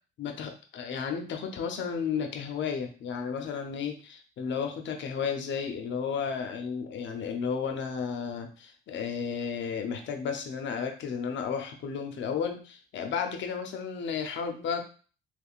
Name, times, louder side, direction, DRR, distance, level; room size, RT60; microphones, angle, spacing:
voice 1, 0.2-14.9, left 6 dB, 70° left, 4 dB, 0.7 m, -33 dB
3.4 x 3.1 x 2.4 m, 0.38 s
cardioid pair, 90°, 20 cm